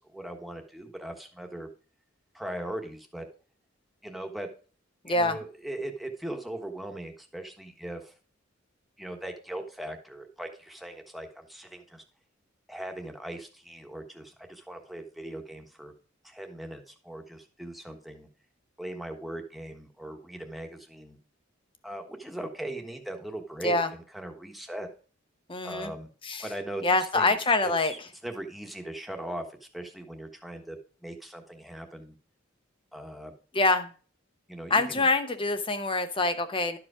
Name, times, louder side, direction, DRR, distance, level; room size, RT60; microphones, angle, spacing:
voice 1, 0.0-1.7 2.3-3.2 4.0-4.5 5.1-8.1 9.0-12.0 12.7-15.9 16.2-18.3 18.8-21.2 21.8-24.9 25.6-26.1 26.4-27.3 27.6-29.4 29.7-32.1 32.9-33.3 34.5-35.0, right 1 dB, ahead, 3 dB, 1.3 m, -39 dB
voice 2, 5.0-5.4 23.6-23.9 25.5-25.9 26.2-26.5 26.8-28.1 33.5-33.9 34.7-36.8, left 2 dB, 25° left, 9 dB, 0.9 m, -25 dB
12.0 x 4.9 x 4.9 m, 0.39 s
head